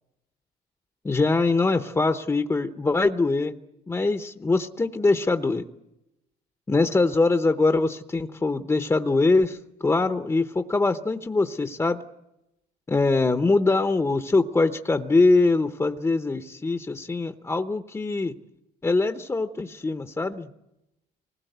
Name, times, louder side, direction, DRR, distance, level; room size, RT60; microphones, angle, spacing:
voice 1, 1.0-3.5 3.9-5.6 6.7-12.0 12.9-18.3 18.8-20.5, left 3 dB, 15° left, 8 dB, 0.8 m, -23 dB
25.5 x 20.5 x 8.0 m, 0.91 s
cardioid pair, 110°, 17 cm